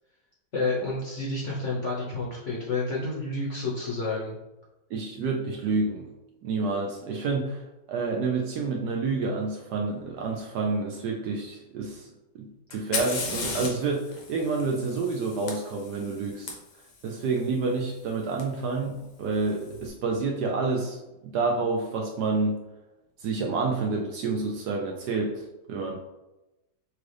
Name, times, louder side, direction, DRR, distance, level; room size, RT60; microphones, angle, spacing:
voice 1, 0.5-4.4, left 3 dB, 50° left, -5 dB, 1.0 m, -30 dB
voice 2, 4.9-6.1 6.4-7.6 7.9-12.1 12.3-16.6 17.0-22.6 23.2-26.0, right 3 dB, 70° right, 0 dB, 1.0 m, -29 dB
Fire, 12.7-16.5 18.4-18.5 19.3-19.7, left 4 dB, 70° left, 1.4 m, -35 dB
6.2 x 2.4 x 3.2 m, 0.97 s
omnidirectional pair, 2.1 m